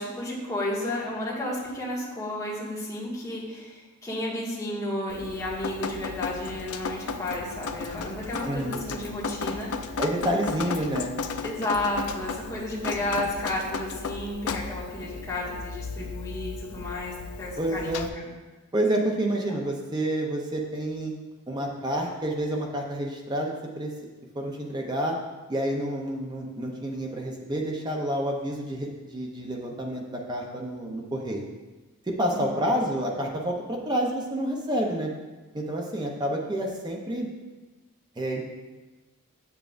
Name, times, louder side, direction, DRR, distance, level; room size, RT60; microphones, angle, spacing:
voice 1, 0.0-9.7 11.4-18.3 19.5-19.6 32.3-32.7, left 1 dB, 15° left, -8 dB, 1.8 m, -32 dB
Drip, 5.1-18.1, left 5 dB, 80° left, 0.4 m, -35 dB
voice 2, 8.4-8.8 10.0-11.1 17.6-18.1 18.7-21.1 21.5-23.9 24.3-25.2 25.5-31.4 32.0-35.1 35.5-37.3 38.2-38.5, right 1 dB, 20° right, 0 dB, 0.6 m, -29 dB
7.9 x 7.0 x 2.5 m, 1.2 s
head